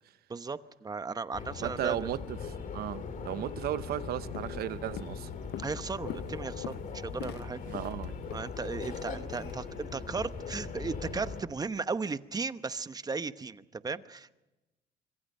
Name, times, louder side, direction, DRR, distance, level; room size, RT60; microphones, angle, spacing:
voice 1, 0.3-2.1 5.6-7.6 8.3-14.3, right 4 dB, 20° right, 0.9 m, -36 dB
sound 1, 1.3-11.4, left 5 dB, 50° left, 2.8 m, -40 dB
voice 2, 1.6-5.3 7.7-8.2, right 12 dB, 65° right, 1.0 m, -35 dB
Walk footsteps, 3.8-4.0 4.3-4.7 5.0-9.6, left 14 dB, 75° left, 0.7 m, -44 dB
25.5 x 24.5 x 5.5 m
cardioid pair, 110°, 17 cm